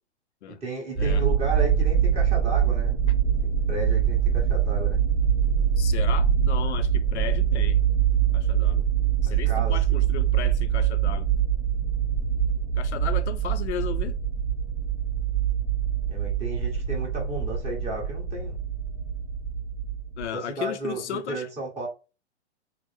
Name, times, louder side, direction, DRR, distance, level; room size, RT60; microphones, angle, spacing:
voice 1, 0.6-3.0 3.4-5.0 9.2-10.0 16.1-18.6 20.3-21.9, right 2 dB, 20° right, 1.4 m, -34 dB
sound 1, 1.0-20.3, right 8 dB, ahead, 1.3 m, -24 dB
voice 2, 5.8-7.8 8.3-8.8 9.2-11.3 12.8-14.2 20.2-21.4, left 10 dB, 75° left, 0.5 m, -35 dB
3.4 x 2.1 x 3.3 m
hypercardioid pair, 120°, 34 cm